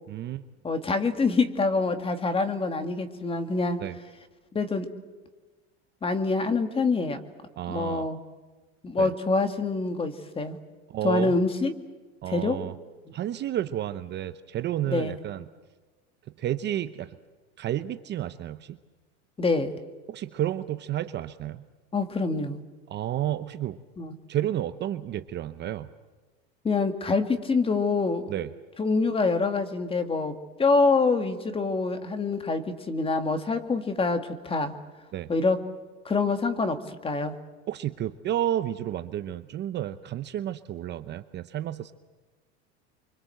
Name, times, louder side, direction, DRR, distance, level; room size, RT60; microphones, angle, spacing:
voice 1, 0.1-0.4 3.8-3.9 7.6-8.1 9.0-9.1 10.9-11.3 12.2-12.8 13.1-15.5 16.4-17.2 17.6-18.8 20.1-21.6 22.9-23.8 24.3-25.9 28.3-28.5 35.1-35.3 37.7-41.9, right 12 dB, 30° right, 11 dB, 0.8 m, -31 dB
voice 2, 0.6-3.8 4.5-4.9 6.0-7.2 7.7-8.2 8.8-10.6 11.0-11.7 12.3-12.6 14.9-15.2 19.4-19.7 21.9-22.6 24.0-24.2 26.6-28.3 28.8-34.7 35.3-35.6 36.1-37.4, left 3 dB, 15° left, 9 dB, 2.0 m, -26 dB
29.0 x 24.5 x 7.8 m, 1.3 s
supercardioid pair, 145°, 33 cm